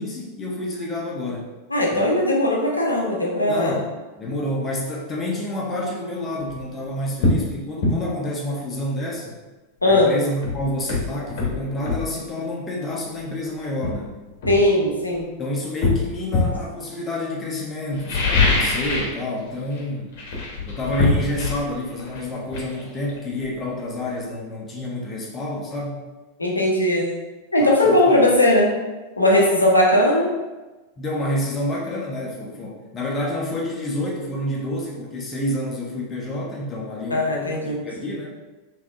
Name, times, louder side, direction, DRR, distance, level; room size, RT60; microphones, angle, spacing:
voice 1, 0.0-1.5 1.9-2.2 3.5-3.9 4.2-9.4 9.8-14.2 15.4-20.2 20.7-26.0 27.6-28.2 31.0-38.3, left 1 dB, 20° left, -3 dB, 0.7 m, -28 dB
voice 2, 1.7-3.8 9.8-10.1 14.5-15.3 26.4-27.1 27.5-28.7 29.2-30.3 37.1-37.8, left 1 dB, 80° left, -2 dB, 0.6 m, -18 dB
sound 1, 6.4-6.6 7.2-7.5 7.8-8.0 9.9-10.0 10.4-12.1 13.2-13.3 13.8-15.2 15.8-16.6 17.9-19.2 19.4-19.8 20.1-23.7 24.0-24.1, left 3 dB, 50° left, 0.9 m, -23 dB
3.5 x 3.0 x 2.3 m, 1.2 s
figure-of-eight pair, 90°, 0 cm